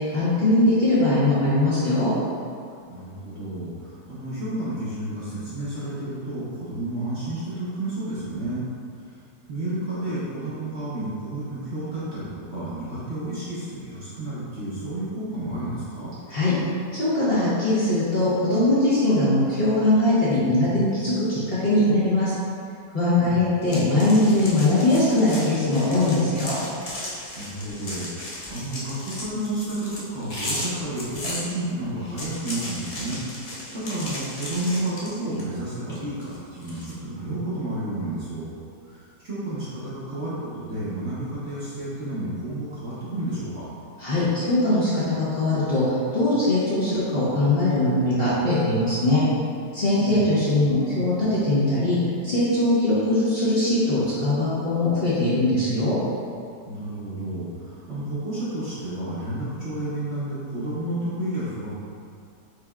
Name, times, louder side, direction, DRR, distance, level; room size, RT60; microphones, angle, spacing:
voice 1, 0.0-2.1 16.3-16.5 16.9-22.3 22.9-26.6 44.0-49.2 49.7-52.0 52.2-56.0, left 1 dB, 40° left, -11 dB, 1.1 m, -21 dB
voice 2, 2.9-8.7 8.9-9.2 9.5-16.1 23.2-23.4 27.4-38.5 38.8-43.7 50.0-50.2 56.7-61.7, right 1 dB, 45° right, -10 dB, 1.0 m, -31 dB
sound 1, 23.7-31.4 32.0-35.5 35.9-36.9, left 1 dB, 65° left, 0.3 m, -35 dB
4.9 x 4.1 x 2.3 m, 2.4 s
omnidirectional pair, 1.8 m